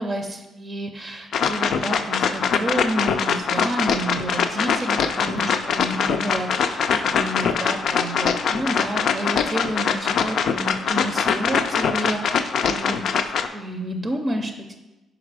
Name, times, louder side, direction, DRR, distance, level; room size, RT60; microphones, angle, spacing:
voice 1, 0.0-13.1 13.5-14.8, right 1 dB, 35° right, 4 dB, 0.5 m, -30 dB
sound 1, 1.3-13.5, left 6 dB, 70° left, 0.4 m, -23 dB
5.0 x 4.9 x 4.7 m, 1.1 s
cardioid pair, 90°, 0 cm